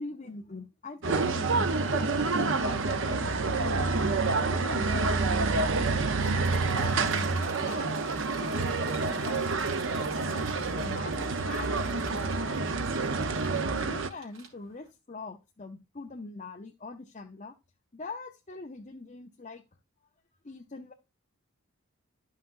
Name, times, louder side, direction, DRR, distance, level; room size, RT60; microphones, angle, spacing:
voice 1, 0.0-3.9 4.3-5.2 5.8-8.0 8.4-9.5 10.0-12.9 13.7-17.6 17.9-19.6 20.4-20.9, left 3 dB, 35° left, 0.7 m, -42 dB
sound 1, 1.0-14.1, right 3 dB, 55° right, 0.7 m, -28 dB
sound 2, 6.2-14.9, right 4 dB, 85° right, 3.1 m, -47 dB
12.0 x 5.7 x 2.6 m
head